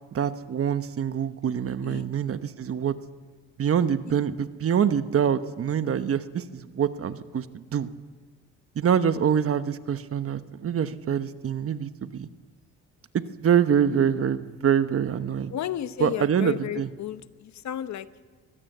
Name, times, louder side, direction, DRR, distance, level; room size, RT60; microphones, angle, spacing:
voice 1, 0.1-2.9 3.6-7.9 8.7-12.3 13.1-15.5 16.0-16.9, right 8 dB, 50° right, 11 dB, 1.1 m, -25 dB
voice 2, 15.5-18.2, left 11 dB, 65° left, 13 dB, 1.0 m, -33 dB
23.5 x 17.0 x 7.9 m, 1.4 s
cardioid pair, 90°, 30 cm